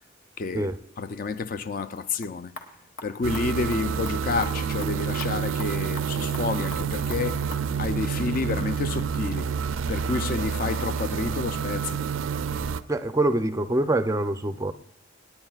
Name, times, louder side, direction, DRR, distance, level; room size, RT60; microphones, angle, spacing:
voice 1, 0.4-0.7 1.0-2.6 3.0-7.5 7.8-9.5 9.9-12.1, left 4 dB, 45° left, 0.4 m, -29 dB
sound 1, 2.0-7.7, left 2 dB, 70° left, 1.5 m, -45 dB
sound 2, 3.2-12.8, right 6 dB, 85° right, 0.4 m, -28 dB
voice 2, 12.9-14.7, right 2 dB, 15° right, 0.4 m, -25 dB
26.0 x 9.6 x 2.4 m
head